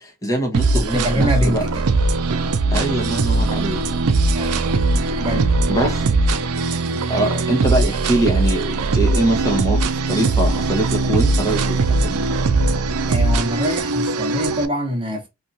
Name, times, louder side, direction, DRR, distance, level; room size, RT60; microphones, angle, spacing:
voice 1, 0.0-1.6 2.7-3.8 4.9-5.0 5.7-6.1 7.1-12.2, right 1 dB, 15° left, 0.9 m, -23 dB
sound 1, 0.5-14.7, right 3 dB, 80° right, 0.4 m, -20 dB
voice 2, 0.7-1.9 4.3-4.6 5.2-5.6 13.1-15.3, equal, 25° right, 1.1 m, -24 dB
2.9 x 2.5 x 2.5 m
head